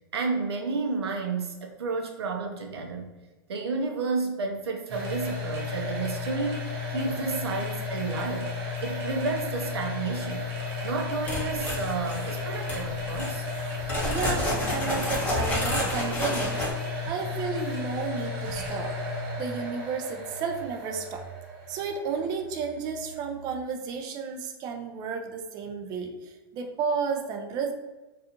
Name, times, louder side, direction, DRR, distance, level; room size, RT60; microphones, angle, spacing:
voice 1, 0.1-3.1 3.5-8.5 8.8-10.5 10.8-13.5, right 4 dB, 85° right, 3 dB, 0.5 m, -31 dB
sound 1, 4.9-23.6, left 3 dB, 65° right, 0.9 m, -34 dB
sound 2, 11.2-12.3 12.7-12.8 13.1-16.7, left 1 dB, 10° left, 0.9 m, -30 dB
voice 2, 14.1-16.7 17.0-18.9 19.4-21.2 21.7-27.7, right 5 dB, 30° right, 4 dB, 0.3 m, -32 dB
2.4 x 2.3 x 2.8 m, 1.1 s
hypercardioid pair, 115°, 13 cm